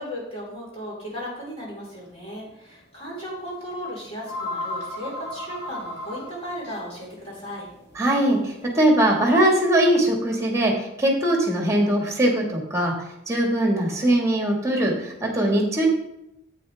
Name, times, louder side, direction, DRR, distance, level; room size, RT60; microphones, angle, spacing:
voice 1, 0.0-7.7, equal, 30° left, -5 dB, 4.0 m, -36 dB
sound 1, 1.9-2.1 2.5-2.6 3.7-3.8 4.0-9.3, left 2 dB, 60° left, 1.8 m, -36 dB
voice 2, 7.9-12.9 13.3-15.9, right 1 dB, 15° right, 1 dB, 1.6 m, -21 dB
9.8 x 8.5 x 3.4 m, 0.84 s
head